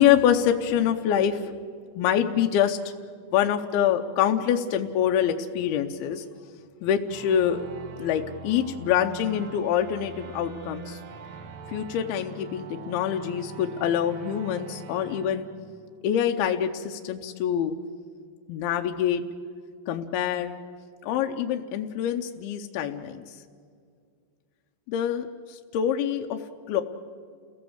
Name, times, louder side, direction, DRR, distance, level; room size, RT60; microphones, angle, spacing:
voice 1, 0.0-1.6 2.0-2.8 3.3-6.2 6.8-7.6 8.0-11.0 11.7-15.5 16.0-17.8 18.5-19.2 19.9-20.5 21.0-23.2 24.9-26.4 26.7-26.8, left 9 dB, 80° left, 4 dB, 2.7 m, -25 dB
sound 1, 7.1-16.4, right 5 dB, 90° right, 1.1 m, -43 dB
29.0 x 17.0 x 8.0 m, 2.1 s
omnidirectional pair, 4.4 m